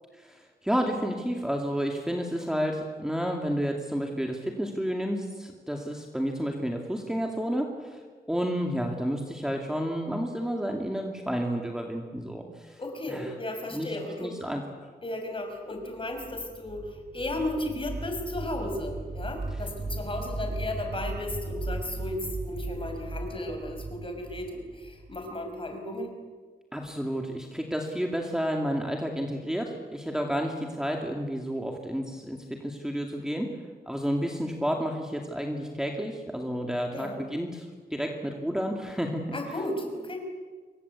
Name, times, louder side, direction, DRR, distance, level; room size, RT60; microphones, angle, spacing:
voice 1, 0.2-8.0 8.3-12.8 13.1-13.3 13.7-14.6 26.7-33.5 33.9-39.4, equal, 5° right, 1 dB, 2.5 m, -31 dB
voice 2, 12.8-14.3 15.0-26.2 36.9-37.2 39.3-40.2, left 1 dB, 30° left, 4 dB, 5.6 m, -34 dB
sound 1, 15.9-25.8, right 3 dB, 35° right, 2.1 m, -37 dB
27.0 x 24.0 x 8.3 m, 1.5 s
wide cardioid pair, 150°, 17 cm